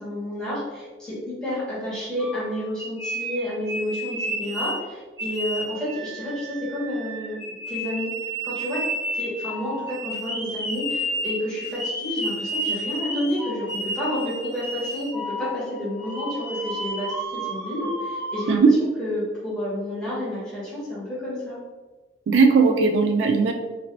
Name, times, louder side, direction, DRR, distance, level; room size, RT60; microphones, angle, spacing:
voice 1, 0.0-8.1 8.4-8.8 9.1-18.6 19.0-21.6, left 1 dB, 5° left, -10 dB, 1.3 m, -30 dB
sound 1, 2.2-4.8 5.2-18.6, equal, 25° left, 0.9 m, -31 dB
voice 2, 22.3-23.5, right 4 dB, 80° right, 5 dB, 0.3 m, -17 dB
2.9 x 2.6 x 2.9 m, 1.2 s
head